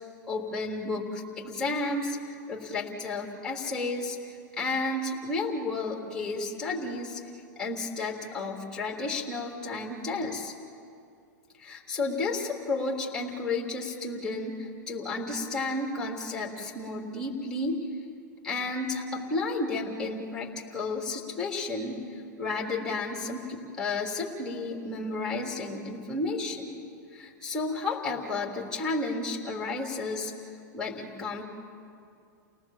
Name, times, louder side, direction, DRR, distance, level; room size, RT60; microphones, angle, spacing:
voice 1, 0.3-7.2 7.6-10.5 11.6-17.9 18.4-26.8 27.1-30.3 30.7-31.4, left 3 dB, 5° left, -1 dB, 3.4 m, -32 dB
29.5 x 18.5 x 7.5 m, 2.4 s
hypercardioid pair, 120°, 10 cm